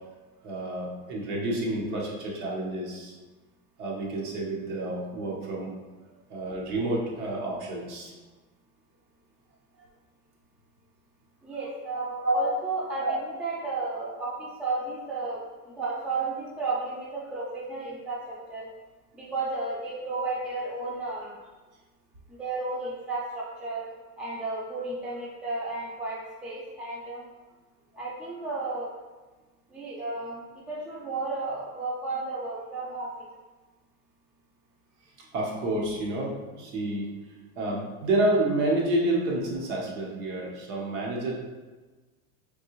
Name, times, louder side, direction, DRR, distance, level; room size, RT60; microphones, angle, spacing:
voice 1, 0.4-3.1 3.8-5.7 6.3-8.1 12.2-12.5 13.0-13.1 35.2-37.1 37.6-41.3, right 1 dB, 75° right, -2 dB, 1.3 m, -29 dB
voice 2, 11.4-15.4 15.7-18.7 19.2-21.3 22.4-23.9 24.2-27.3 27.9-28.9 29.7-33.3, right 3 dB, ahead, -5 dB, 0.3 m, -33 dB
4.3 x 2.9 x 3.0 m, 1.2 s
supercardioid pair, 120°, 46 cm